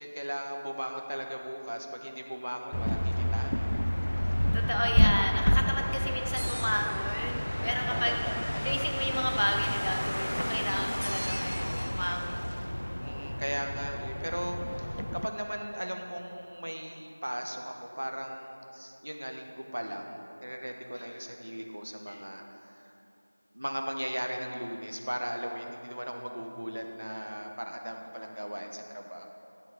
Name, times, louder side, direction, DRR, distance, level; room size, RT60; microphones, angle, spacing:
voice 1, 0.0-3.7 5.7-6.0 7.9-8.4 12.3-12.5 13.0-22.9 23.5-29.3, equal, 65° right, 3 dB, 1.2 m, -37 dB
sound 1, 2.7-15.3, equal, 70° left, 0.4 m, -30 dB
voice 2, 4.5-8.2 8.6-12.5 20.9-21.3 22.1-22.2, equal, 50° left, 2 dB, 1.1 m, -32 dB
sound 2, 6.4-7.6 11.0-12.6, right 1 dB, 50° right, 0.5 m, -43 dB
12.0 x 7.5 x 5.1 m, 2.7 s
figure-of-eight pair, 180°, 0 cm